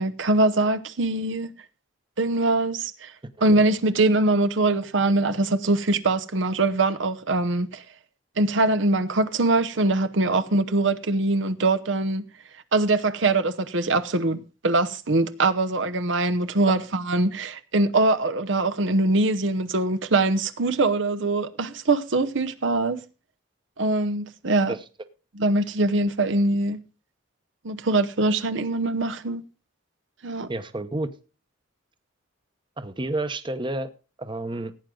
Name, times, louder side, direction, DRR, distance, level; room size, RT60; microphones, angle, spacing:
voice 1, 0.0-1.5 2.2-3.1 3.4-7.8 8.4-12.2 12.7-23.0 23.8-24.7 25.4-26.8 27.6-29.4 30.2-30.5, right 2 dB, 65° right, 0.9 m, -23 dB
voice 2, 30.5-31.1 32.8-33.9 34.2-34.7, right 2 dB, 25° right, 0.9 m, -29 dB
16.5 x 9.1 x 3.9 m
head